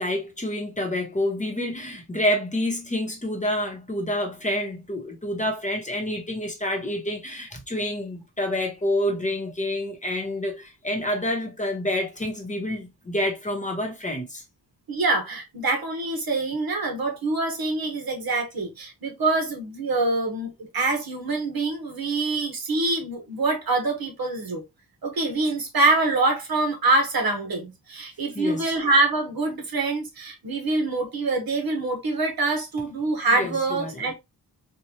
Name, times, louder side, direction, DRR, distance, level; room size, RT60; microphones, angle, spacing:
voice 1, 0.0-14.4 28.3-28.7 33.3-34.1, left 1 dB, 20° left, 0.9 m, -28 dB
voice 2, 14.9-24.6 25.0-34.1, right 2 dB, 70° right, 1.2 m, -25 dB
4.3 x 2.3 x 2.8 m
wide cardioid pair, 175°, 38 cm